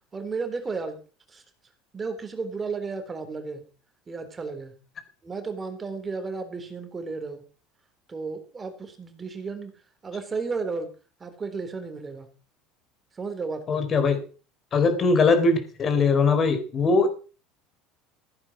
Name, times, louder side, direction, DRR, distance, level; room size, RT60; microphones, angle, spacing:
voice 1, 0.1-1.0 1.3-1.4 1.9-3.7 4.1-4.7 5.2-7.5 8.1-9.8 10.0-10.9 11.2-12.3 13.1-13.9 14.8-15.0, right 4 dB, 20° right, 8 dB, 3.5 m, -33 dB
voice 2, 13.7-14.2 14.7-17.1, left 4 dB, 35° left, 9 dB, 4.9 m, -21 dB
16.0 x 9.9 x 6.5 m, 0.37 s
supercardioid pair, 115°, 0 cm